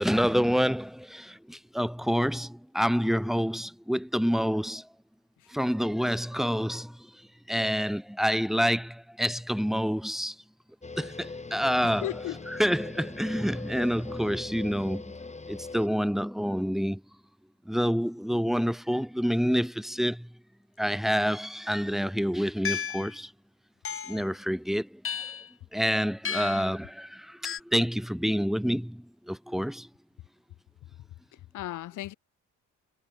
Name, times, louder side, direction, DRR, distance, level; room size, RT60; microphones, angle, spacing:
voice 1, 0.0-4.9 5.5-7.0 7.5-10.3 11.0-12.1 12.6-15.0 15.5-17.0 17.7-20.3 20.8-23.3 24.1-24.9 25.7-29.9, equal, ahead, 4.7 m, -27 dB
sound 1, 10.8-15.9, left 3 dB, 20° left, 4.1 m, -41 dB
voice 2, 11.8-12.4 13.8-13.9 31.3-32.1, left 15 dB, 85° left, 5.8 m, -36 dB
sound 2, 22.6-23.1 23.8-24.3 25.0-25.5 26.2-26.7 27.4-27.6, left 7 dB, 45° left, 2.6 m, -33 dB
cardioid pair, 90°, 30 cm